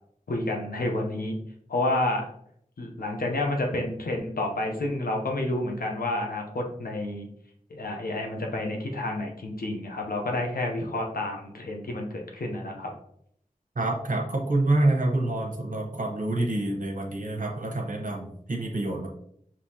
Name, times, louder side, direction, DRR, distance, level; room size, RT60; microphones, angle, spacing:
voice 1, 0.3-1.4 1.7-2.2 2.8-7.3 7.7-12.9, left 1 dB, 90° left, 1 dB, 0.8 m, -29 dB
voice 2, 13.8-19.1, right 2 dB, 65° right, 0 dB, 0.9 m, -27 dB
5.3 x 2.9 x 2.8 m, 0.68 s
wide cardioid pair, 45°, 15 cm